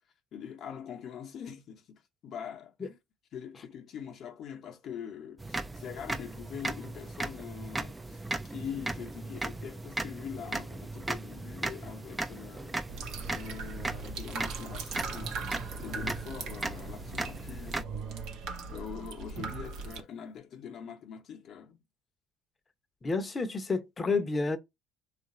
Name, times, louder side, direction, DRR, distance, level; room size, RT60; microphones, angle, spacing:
voice 1, 0.3-3.0 3.3-12.8 13.3-15.5 15.8-17.9 18.7-21.8, left 8 dB, 60° left, 0.8 m, -43 dB
sound 1, 5.4-17.8, right 2 dB, 15° right, 0.5 m, -37 dB
sound 2, 12.9-20.0, right 4 dB, 70° right, 0.7 m, -39 dB
voice 2, 23.0-24.6, left 3 dB, 25° left, 0.8 m, -30 dB
3.5 x 2.5 x 4.2 m
supercardioid pair, 85°, 0 cm